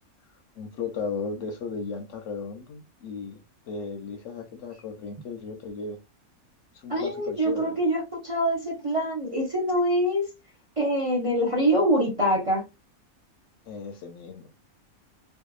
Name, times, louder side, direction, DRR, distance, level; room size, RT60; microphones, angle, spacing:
voice 1, 0.6-3.4 3.7-6.0 6.7-7.8 13.7-14.5, left 5 dB, 65° left, 0.8 m, -35 dB
voice 2, 6.9-10.3 10.8-12.6, equal, 35° right, 0.5 m, -24 dB
2.7 x 2.3 x 2.3 m
omnidirectional pair, 1.5 m